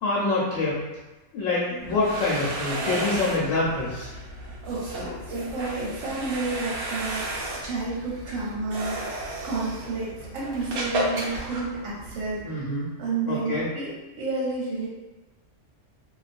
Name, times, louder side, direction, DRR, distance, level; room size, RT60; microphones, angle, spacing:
voice 1, 0.0-0.8 1.3-4.1 12.4-12.9 13.3-13.7, left 2 dB, 80° left, -6 dB, 1.0 m, -26 dB
sound 1, 1.8-12.4, right 1 dB, 65° right, 0.8 m, -33 dB
voice 2, 4.6-14.9, right 3 dB, 85° right, -5 dB, 1.0 m, -31 dB
2.3 x 2.2 x 2.4 m, 1.1 s
omnidirectional pair, 1.3 m